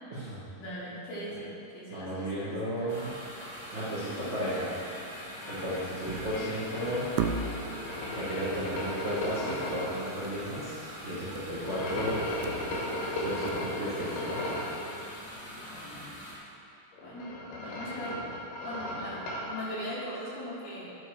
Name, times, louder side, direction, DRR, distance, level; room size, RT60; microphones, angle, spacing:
voice 1, 0.6-2.9 4.1-4.5 15.6-16.0 17.0-18.2 18.6-21.0, equal, 55° left, -7 dB, 2.6 m, -40 dB
voice 2, 1.9-3.1 3.7-4.7 5.5-7.1 8.1-12.2 13.2-14.2, equal, 55° right, -9 dB, 0.7 m, -34 dB
sound 1, 2.9-16.4, equal, 25° left, 0.6 m, -44 dB
sound 2, 5.4-10.0 11.6-14.8 16.9-19.5, left 1 dB, 75° left, 2.9 m, -36 dB
sound 3, 6.1-6.5 7.2-7.8 10.2-10.5 10.7-10.8 11.4-11.7 12.1-13.1 13.5-13.6, right 6 dB, 80° right, 2.0 m, -34 dB
12.0 x 4.8 x 4.7 m, 2.6 s
omnidirectional pair, 3.9 m